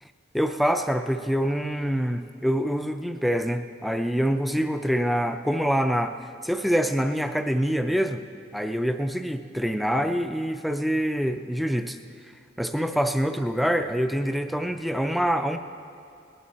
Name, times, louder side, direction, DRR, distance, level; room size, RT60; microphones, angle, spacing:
voice 1, 0.3-8.2 8.5-12.0 12.6-15.6, equal, ahead, 8 dB, 0.4 m, -25 dB
19.5 x 10.5 x 4.2 m, 2.4 s
head